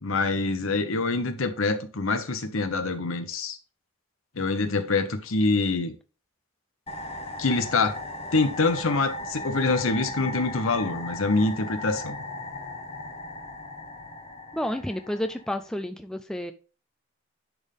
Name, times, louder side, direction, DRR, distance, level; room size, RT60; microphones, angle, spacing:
voice 1, 0.0-3.6 4.4-5.9 7.4-8.0 8.3-12.2, left 3 dB, 65° left, 0.9 m, -25 dB
sound 1, 6.9-15.7, left 1 dB, 25° left, 1.4 m, -37 dB
voice 2, 14.5-16.5, left 1 dB, 5° left, 0.3 m, -30 dB
10.5 x 3.6 x 3.5 m
head